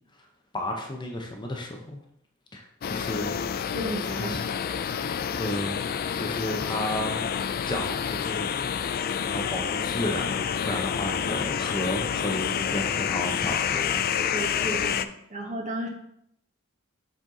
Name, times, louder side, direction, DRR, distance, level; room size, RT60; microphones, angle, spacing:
voice 1, 0.5-2.0 2.5-3.4 4.1-4.4 5.4-5.9 6.1-7.3 7.7-8.7 9.2-14.5, left 1 dB, 20° left, 1 dB, 0.7 m, -33 dB
sound 1, 2.8-15.0, left 8 dB, 45° left, 0.3 m, -28 dB
voice 2, 3.7-4.3 14.1-15.0 15.3-15.9, right 1 dB, 35° right, 0 dB, 1.3 m, -33 dB
7.3 x 4.4 x 3.8 m, 0.73 s
head